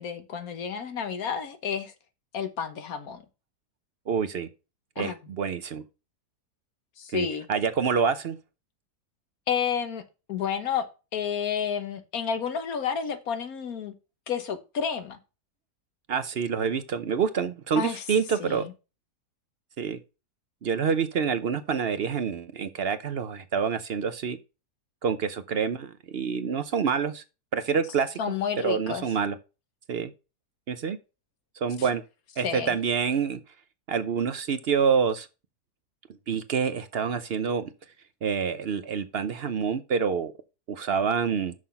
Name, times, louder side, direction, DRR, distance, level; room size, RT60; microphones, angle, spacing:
voice 1, 0.0-1.9 2.3-3.2 5.0-5.2 7.0-7.5 9.5-10.0 10.3-10.9 11.1-13.9 14.3-15.2 17.7-18.0 18.4-18.7 28.2-29.0 32.4-32.8, left 7 dB, 65° left, 1.5 m, -30 dB
voice 2, 4.1-4.5 5.0-5.8 7.1-8.4 16.1-18.7 19.8-20.0 20.6-24.4 25.0-27.2 27.5-28.2 28.6-29.4 29.9-30.1 30.7-31.0 31.6-32.0 32.4-33.4 33.9-35.3 36.3-37.7 38.2-40.3 40.7-41.5, right 6 dB, 60° right, 0.6 m, -27 dB
6.4 x 5.6 x 5.7 m
omnidirectional pair, 1.7 m